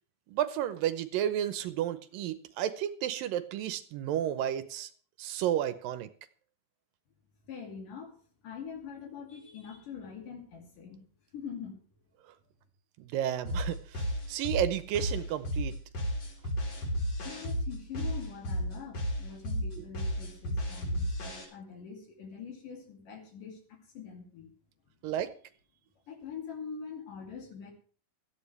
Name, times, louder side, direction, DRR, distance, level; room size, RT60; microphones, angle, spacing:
voice 1, 0.3-4.9 5.2-6.1 12.2-12.3 13.0-15.7 19.8-19.9 25.0-25.3, right 11 dB, 80° right, 2.4 m, -32 dB
voice 2, 7.4-8.2 8.4-11.0 11.3-11.8 17.2-24.5 26.1-27.7, left 6 dB, 65° left, 3.9 m, -44 dB
sound 1, 13.4-21.4, equal, 45° left, 4.6 m, -33 dB
16.5 x 13.5 x 3.3 m
omnidirectional pair, 4.2 m